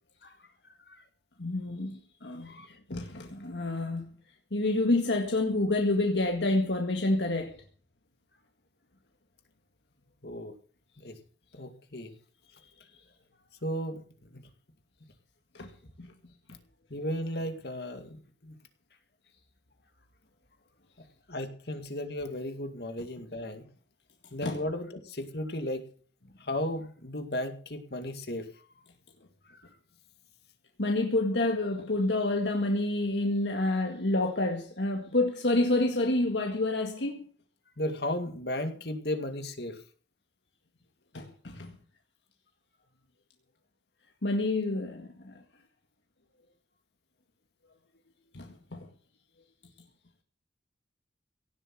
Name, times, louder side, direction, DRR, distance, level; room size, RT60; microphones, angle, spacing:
voice 1, 1.4-2.5 2.9-4.1 4.5-7.6 15.5-15.7 16.0-16.1 16.5-16.6 24.4-24.6 30.8-37.3 41.1-41.7 44.2-45.3 48.3-48.9, left 2 dB, 85° left, 2.0 m, -28 dB
voice 2, 2.4-2.8 10.2-10.5 11.0-11.2 11.5-12.1 13.6-14.4 16.9-18.6 21.3-23.6 24.3-25.8 26.4-28.6 29.5-29.6 37.8-39.8, left 1 dB, 65° left, 2.2 m, -35 dB
17.0 x 7.9 x 7.7 m
head